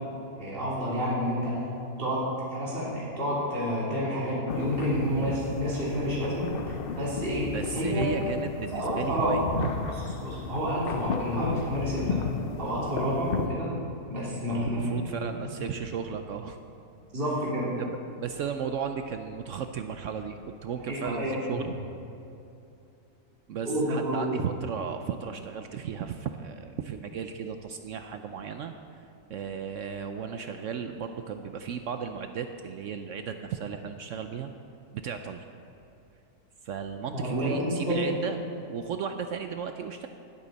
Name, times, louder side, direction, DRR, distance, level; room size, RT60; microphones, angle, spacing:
voice 1, 0.4-1.6 2.0-6.5 6.9-8.1 8.7-9.5 10.2-12.2 12.6-13.7 14.1-14.8 15.1-15.2 17.1-17.7 20.9-21.3 23.6-24.3 37.1-38.0, equal, 35° right, -8 dB, 3.1 m, -29 dB
sound 1, 4.5-13.5, left 6 dB, 65° left, 0.5 m, -34 dB
voice 2, 7.5-9.7 14.5-16.6 17.8-21.7 23.5-28.7 29.3-34.5 34.9-35.4 36.6-40.1, right 7 dB, 70° right, 7 dB, 0.8 m, -35 dB
19.0 x 8.5 x 4.1 m, 2.7 s
omnidirectional pair, 1.7 m